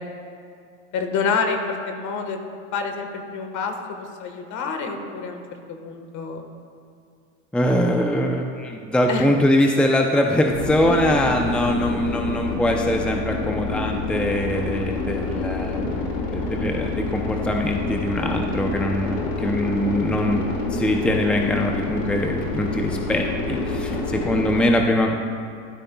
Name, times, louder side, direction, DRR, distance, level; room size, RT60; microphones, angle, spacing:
voice 1, 0.9-2.4 2.7-5.4 5.7-6.5 9.1-9.2, left 5 dB, 50° left, 5 dB, 1.5 m, -27 dB
voice 2, 7.5-20.4 20.7-25.2, left 1 dB, 5° left, 2 dB, 0.6 m, -22 dB
sound 1, 10.5-24.6, left 3 dB, 80° left, 2.0 m, -27 dB
13.5 x 12.5 x 2.3 m, 2.3 s
hypercardioid pair, 95°, 37 cm